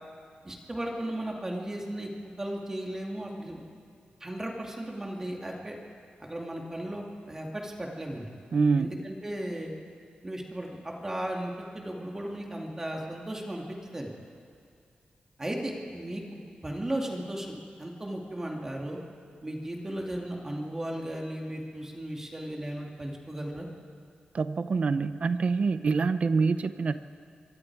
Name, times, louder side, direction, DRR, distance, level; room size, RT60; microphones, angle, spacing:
voice 1, 0.4-2.1 2.4-3.6 4.2-5.8 6.2-8.3 8.8-9.7 10.2-14.1 15.4-16.2 16.6-19.0 19.4-23.7, right 1 dB, 15° right, 0 dB, 2.4 m, -35 dB
voice 2, 8.5-9.0 24.3-27.0, right 4 dB, 45° right, 11 dB, 0.7 m, -26 dB
25.5 x 23.5 x 4.8 m, 2.3 s
wide cardioid pair, 170°, 3 cm